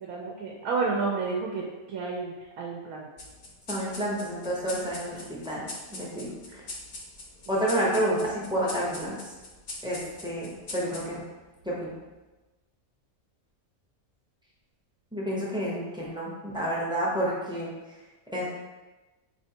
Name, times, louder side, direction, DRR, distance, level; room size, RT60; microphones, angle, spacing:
voice 1, 0.0-3.1 6.2-6.3, right 4 dB, 90° right, -1 dB, 1.0 m, -31 dB
sound 1, 3.2-12.1, left 2 dB, 50° left, 0.7 m, -43 dB
voice 2, 3.7-6.6 7.5-9.3 9.8-11.2 11.6-11.9 15.1-17.7 18.3-18.5, equal, 5° right, -6 dB, 0.5 m, -30 dB
4.2 x 3.0 x 2.8 m, 1.2 s
omnidirectional pair, 1.5 m